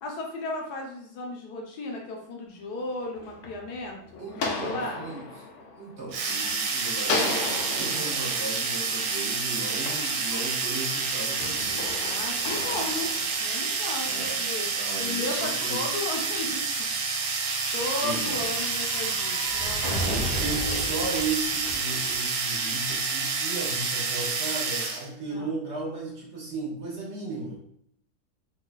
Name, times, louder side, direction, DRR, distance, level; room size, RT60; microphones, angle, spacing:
voice 1, 0.0-5.0 12.0-13.1 13.4-14.7 15.0-16.9 17.7-20.2 25.3-25.5, left 2 dB, 80° left, 0 dB, 1.3 m, -35 dB
sound 1, 2.9-6.6 7.0-10.8 11.4-14.0, left 3 dB, 60° left, 0.9 m, -35 dB
voice 2, 4.2-11.8 14.0-14.4 14.7-15.8 18.0-18.5 20.0-27.6, right 3 dB, 50° right, -3 dB, 1.0 m, -35 dB
sound 2, 6.1-25.1, right 4 dB, 80° right, 1.1 m, -29 dB
sound 3, 12.4-22.6 22.8-22.9, equal, 40° left, 1.7 m, -38 dB
3.7 x 3.2 x 2.3 m, 0.71 s
omnidirectional pair, 1.7 m